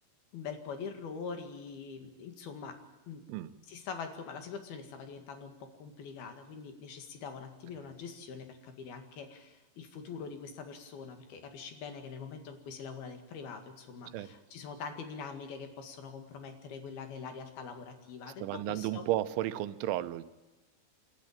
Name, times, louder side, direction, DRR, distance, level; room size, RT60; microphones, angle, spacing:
voice 1, 0.3-2.8 3.1-3.2 3.7-19.0, left 5 dB, 60° left, 6 dB, 3.6 m, -44 dB
voice 2, 18.4-20.2, right 14 dB, 85° right, 12 dB, 3.3 m, -33 dB
27.5 x 13.0 x 8.8 m, 1.1 s
omnidirectional pair, 5.3 m